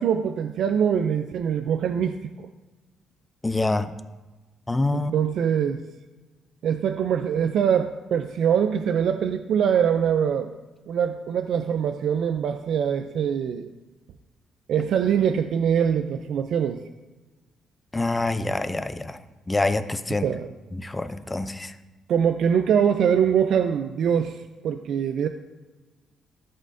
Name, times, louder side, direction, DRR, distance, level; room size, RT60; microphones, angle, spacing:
voice 1, 0.0-2.5 4.9-5.8 6.6-10.5 10.9-13.7 14.7-16.8 20.2-20.5 22.1-25.3, right 8 dB, 70° right, 7 dB, 0.4 m, -23 dB
voice 2, 3.4-3.9 4.7-5.1 17.9-19.0 19.5-20.3 20.8-21.7, left 2 dB, 15° left, 10 dB, 0.5 m, -25 dB
13.5 x 5.4 x 2.6 m, 1.2 s
cardioid pair, 90°, 0 cm